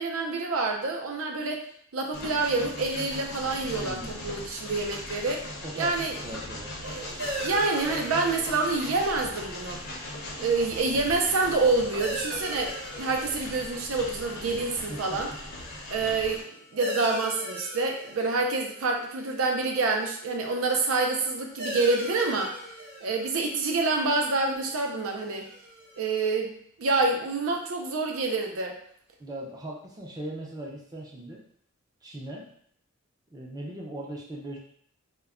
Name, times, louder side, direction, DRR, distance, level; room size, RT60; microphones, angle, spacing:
voice 1, 0.0-1.6 1.9-5.4 5.8-6.2 6.8-9.8 10.4-15.3 15.9-22.6 23.0-25.5 26.0-28.7, right 3 dB, 75° right, 3 dB, 0.5 m, -27 dB
Train, 2.1-16.4, left 1 dB, 45° left, 0.6 m, -39 dB
voice 2, 3.7-4.3 5.6-6.7 14.9-15.2 29.2-31.4 32.0-32.5 33.3-34.6, right 1 dB, 15° right, -2 dB, 0.5 m, -39 dB
sound 1, 7.2-26.3, right 1 dB, 45° right, 0.8 m, -41 dB
2.2 x 2.1 x 3.5 m, 0.63 s
head